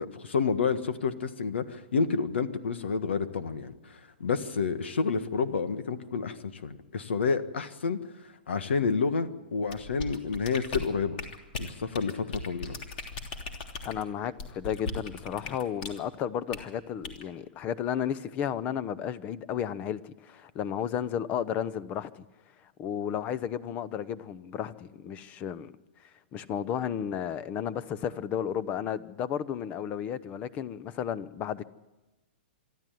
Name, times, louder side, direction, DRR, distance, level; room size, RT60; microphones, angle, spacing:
voice 1, 0.0-8.0 8.5-11.2 11.6-12.8, left 5 dB, 90° left, 1.6 m, -29 dB
sound 1, 9.7-16.0 16.5-16.7 17.0-17.2, left 3 dB, 50° left, 3.2 m, -38 dB
voice 2, 13.8-22.2 22.8-25.7 26.3-31.6, left 9 dB, 25° left, 0.7 m, -33 dB
25.5 x 12.5 x 9.3 m
hypercardioid pair, 155°, 6 cm